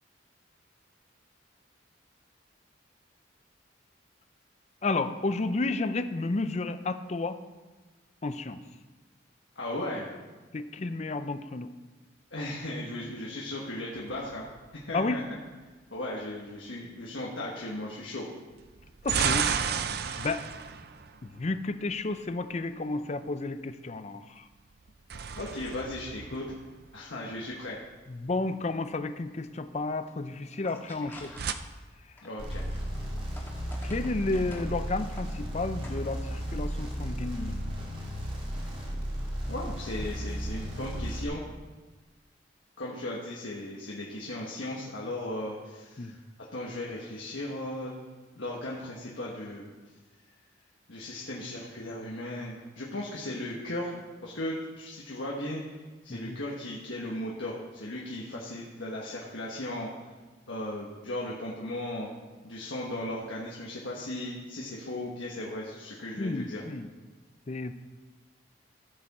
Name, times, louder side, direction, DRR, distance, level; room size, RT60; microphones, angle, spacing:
voice 1, 4.8-7.4 8.2-8.6 10.5-11.7 14.9-15.2 19.0-19.5 20.2-20.5 21.2-24.5 28.1-31.3 33.8-37.6 46.0-46.1 56.1-56.4 66.2-66.9 67.5-67.7, left 3 dB, 35° left, 11 dB, 0.5 m, -32 dB
voice 2, 9.5-10.1 10.8-10.9 12.3-14.4 14.9-15.2 15.9-18.2 25.4-26.5 26.9-27.8 32.2-32.7 39.5-41.4 42.8-46.2 46.5-47.9 48.4-49.7 50.9-53.9 54.2-55.6 56.0-59.9 60.5-62.1 62.4-66.6, left 1 dB, 75° left, -4 dB, 1.4 m, -36 dB
sound 1, 13.9-15.0 18.6-21.9 24.7-27.2 31.0-31.5, right 7 dB, 55° right, 0.5 m, -33 dB
sound 2, 30.1-31.8 32.2-34.7 35.1-35.2 35.6-36.2, left 1 dB, 10° left, 1.5 m, -49 dB
sound 3, 32.4-41.2, equal, 30° right, 1.9 m, -34 dB
14.5 x 6.9 x 4.2 m, 1.3 s
head